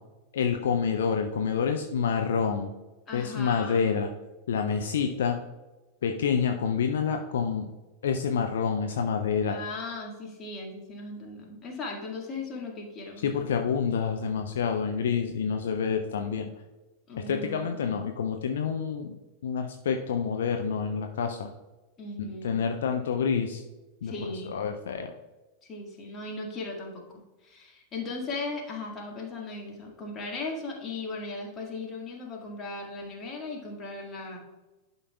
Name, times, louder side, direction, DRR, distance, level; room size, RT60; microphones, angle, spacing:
voice 1, 0.3-2.7 3.1-4.1 4.5-5.4 6.0-7.7 8.0-9.6 13.2-16.5 17.2-19.1 19.4-21.5 22.2-23.6 24.0-24.1 24.5-25.1, left 6 dB, 60° left, 5 dB, 0.5 m, -28 dB
voice 2, 3.1-3.9 9.5-13.6 17.1-17.8 22.0-22.6 24.0-24.6 25.7-34.4, left 3 dB, 25° left, 0 dB, 1.8 m, -37 dB
11.5 x 5.5 x 2.3 m, 1.1 s
figure-of-eight pair, 90°, 0 cm